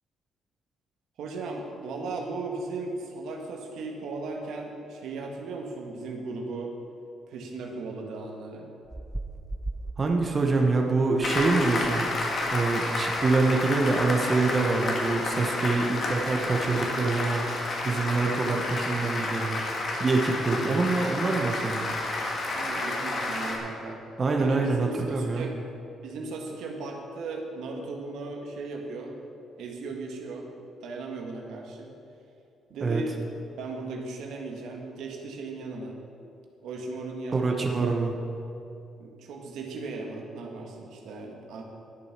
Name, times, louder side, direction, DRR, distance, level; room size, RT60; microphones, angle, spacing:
voice 1, 1.2-6.8 7.3-8.7 20.5-20.7 22.5-24.0 24.4-25.5 26.0-29.1 29.6-30.5 30.8-31.9 32.7-33.2 33.6-36.0 36.6-37.9 39.0-41.6, right 3 dB, 80° right, 1 dB, 1.6 m, -37 dB
sound 1, 8.8-10.0 11.2-11.5 11.7-12.0, right 2 dB, 10° right, 0.6 m, -37 dB
voice 2, 10.0-12.1 12.5-17.4 17.8-19.6 20.0-21.9 24.2-25.5 32.8-33.0 37.3-38.1, right 3 dB, 35° right, 2 dB, 1.1 m, -25 dB
Applause, 11.2-23.6, left 2 dB, 50° left, 2.0 m, -30 dB
11.5 x 7.8 x 6.0 m, 2.7 s
cardioid pair, 90°, 0 cm